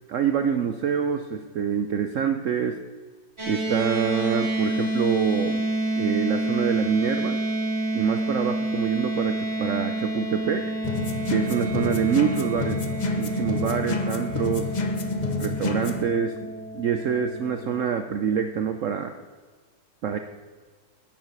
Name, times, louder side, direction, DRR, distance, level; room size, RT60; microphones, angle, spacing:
voice 1, 0.1-2.8 3.5-5.7 6.0-7.4 7.9-10.7 11.3-12.8 13.2-14.7 15.4-19.1 20.0-20.2, right 7 dB, 65° right, 7 dB, 0.8 m, -26 dB
sound 1, 3.4-17.8, right 2 dB, 15° right, 2.9 m, -29 dB
sound 2, 10.8-16.1, left 3 dB, 40° left, 0.6 m, -28 dB
10.5 x 8.9 x 6.7 m, 1.5 s
omnidirectional pair, 2.0 m